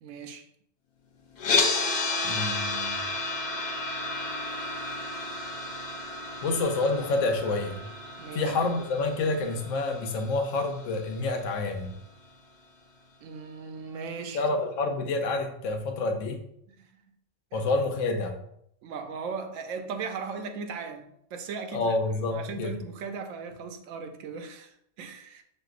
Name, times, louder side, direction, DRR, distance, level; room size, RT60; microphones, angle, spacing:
voice 1, 0.0-0.5 8.2-8.5 13.2-14.4 16.8-17.0 17.5-17.6 18.8-22.0 22.3-25.4, right 5 dB, 90° right, 0.9 m, -38 dB
sound 1, 1.4-11.5, left 3 dB, 65° left, 0.4 m, -32 dB
voice 2, 2.2-3.0 6.4-7.8 8.3-11.9 14.3-16.4 17.5-18.4 21.7-22.8, left 3 dB, 85° left, 1.0 m, -28 dB
6.1 x 2.5 x 2.4 m
omnidirectional pair, 1.3 m